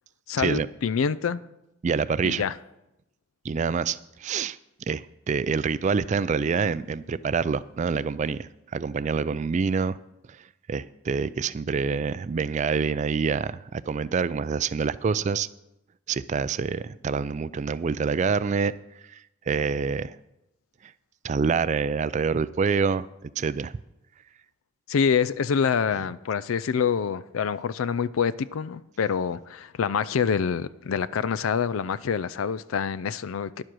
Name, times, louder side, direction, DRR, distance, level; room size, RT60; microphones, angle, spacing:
voice 1, 0.3-1.4 2.2-2.5 24.9-33.6, left 6 dB, 85° left, 0.4 m, -26 dB
voice 2, 1.8-2.4 3.4-4.6 4.9-10.0 10.7-15.5 16.1-18.7 19.1-19.2 19.5-20.2 21.2-23.7, right 5 dB, 35° right, 0.3 m, -26 dB
10.5 x 7.4 x 6.2 m
head